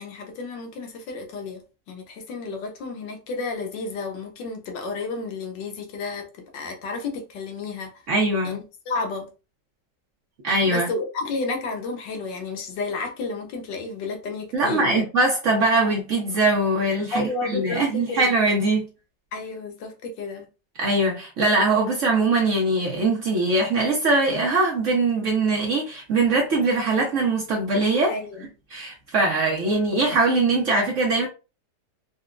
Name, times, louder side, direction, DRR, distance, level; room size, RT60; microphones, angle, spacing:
voice 1, 0.0-8.0 8.4-9.3 10.6-15.0 17.1-18.3 19.3-20.5 28.1-28.5, left 3 dB, 80° left, 1.4 m, -32 dB
voice 2, 8.1-8.6 10.4-10.9 14.5-18.9 20.8-28.2 28.7-31.3, right 2 dB, 60° right, 0.9 m, -22 dB
4.0 x 2.2 x 2.4 m
omnidirectional pair, 1.9 m